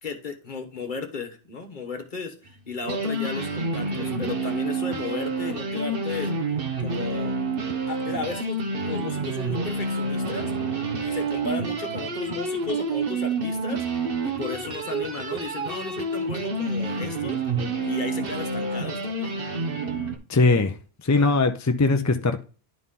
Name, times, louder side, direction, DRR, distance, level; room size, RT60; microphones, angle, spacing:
voice 1, 0.0-6.3 6.8-7.3 7.9-10.5 11.0-13.8 14.2-17.4 17.8-19.3 21.1-21.4, left 4 dB, 50° left, 1.3 m, -34 dB
sound 1, 2.5-2.6 2.8-20.2, right 3 dB, 60° right, 1.3 m, -28 dB
voice 2, 20.3-22.4, left 3 dB, 25° left, 0.4 m, -21 dB
11.0 x 4.1 x 3.7 m
omnidirectional pair, 1.1 m